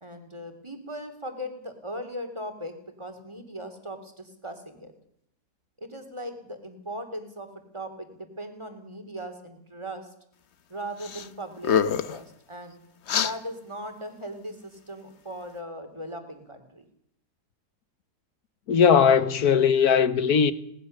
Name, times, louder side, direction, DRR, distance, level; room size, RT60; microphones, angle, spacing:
voice 1, 0.0-4.9 5.8-10.1 10.7-12.8 13.2-16.9, equal, 15° right, 3.0 m, -39 dB
sound 1, 11.0-11.3 11.6-12.2 13.1-13.3, left 7 dB, 50° left, 1.1 m, -25 dB
voice 2, 18.7-20.5, left 7 dB, 70° left, 1.6 m, -19 dB
21.0 x 19.0 x 6.6 m
omnidirectional pair, 1.7 m